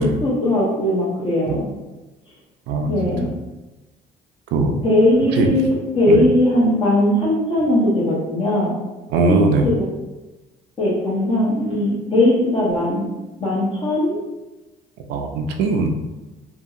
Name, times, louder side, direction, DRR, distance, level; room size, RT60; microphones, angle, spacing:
voice 1, 0.0-1.7 2.9-3.3 4.8-8.7 9.3-9.9 10.8-13.1 13.4-14.2, left 1 dB, 30° left, -6 dB, 0.9 m, -19 dB
voice 2, 2.7-3.3 4.5-4.8 5.3-5.5 6.1-6.2 9.1-9.7 15.1-15.9, right 3 dB, 85° right, 4 dB, 0.4 m, -20 dB
2.7 x 2.7 x 2.4 m, 1.1 s
cardioid pair, 110°, 17 cm